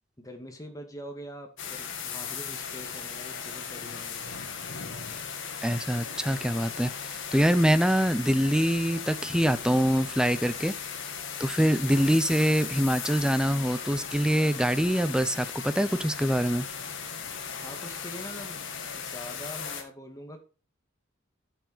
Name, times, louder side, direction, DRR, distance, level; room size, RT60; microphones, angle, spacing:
voice 1, 0.2-4.3 17.6-18.6 18.9-20.4, equal, 15° left, 2.0 m, -43 dB
sound 1, 1.6-19.8, left 6 dB, 70° left, 2.0 m, -37 dB
voice 2, 5.6-10.8 11.4-16.7, equal, 5° right, 0.6 m, -24 dB
10.5 x 7.1 x 4.0 m
head